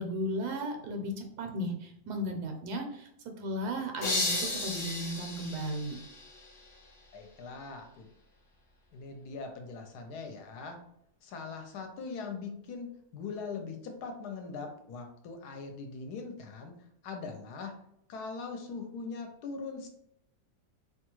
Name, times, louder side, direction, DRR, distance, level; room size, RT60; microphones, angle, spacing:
voice 1, 0.0-3.1 3.4-6.0, equal, 80° right, 4 dB, 1.1 m, -35 dB
sound 1, 4.0-6.8, left 2 dB, 45° left, 0.5 m, -34 dB
voice 2, 7.1-8.1 8.9-10.8 11.2-16.7 17.0-17.7 18.1-19.9, left 4 dB, 80° left, 5 dB, 1.1 m, -41 dB
2.8 x 2.3 x 3.0 m, 0.74 s
omnidirectional pair, 1.7 m